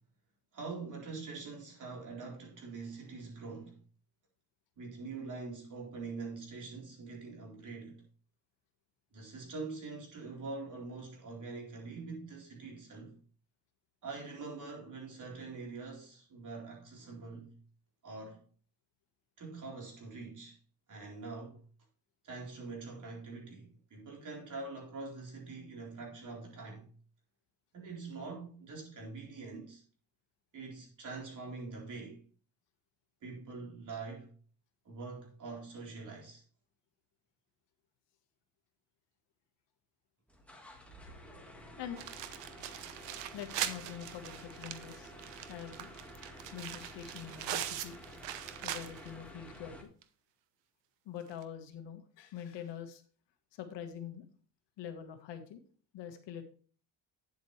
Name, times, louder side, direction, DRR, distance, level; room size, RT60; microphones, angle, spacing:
voice 1, 0.5-3.8 4.8-8.0 9.1-13.2 14.0-17.5 18.0-18.4 19.4-20.6 20.9-21.6 22.2-26.9 27.7-29.8 30.5-32.2 33.2-34.3 34.8-36.4, right 4 dB, 40° right, 4.0 m, -44 dB
sound 1, 40.3-49.8, equal, 5° left, 1.7 m, -51 dB
sound 2, 42.0-49.2 49.6-49.7 50.0-50.1 51.3-51.4, right 11 dB, 70° right, 1.0 m, -41 dB
voice 2, 43.3-45.1 45.5-45.9 46.5-48.0 48.6-49.9 51.0-53.0 53.5-54.2 54.8-55.6 55.9-56.4, left 9 dB, 70° left, 1.6 m, -44 dB
9.4 x 8.0 x 3.2 m
cardioid pair, 130°, 44 cm